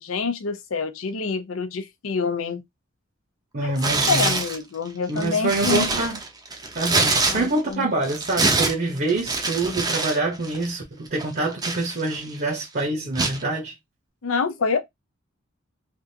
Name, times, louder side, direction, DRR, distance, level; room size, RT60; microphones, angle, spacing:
voice 1, 0.0-2.6 3.6-3.7 4.1-5.9 7.2-7.9 14.2-14.8, left 5 dB, 85° left, 0.6 m, -26 dB
voice 2, 3.5-4.4 5.1-6.2 6.7-13.7, right 2 dB, 45° right, 0.9 m, -26 dB
Tearing, 3.8-4.6 5.1-7.7 8.0-10.2 10.4-10.7 11.2-12.4 13.2-13.4, right 3 dB, 20° right, 0.6 m, -24 dB
3.4 x 2.5 x 2.7 m
head